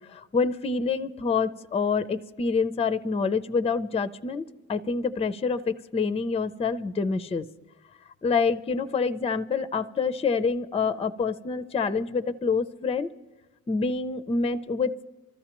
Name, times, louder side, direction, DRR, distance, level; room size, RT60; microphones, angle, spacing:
voice 1, 0.1-7.5 8.2-13.1 13.7-15.1, left 5 dB, 20° left, 12 dB, 0.5 m, -27 dB
24.5 x 14.0 x 3.0 m, 1.2 s
cardioid pair, 90°, 30 cm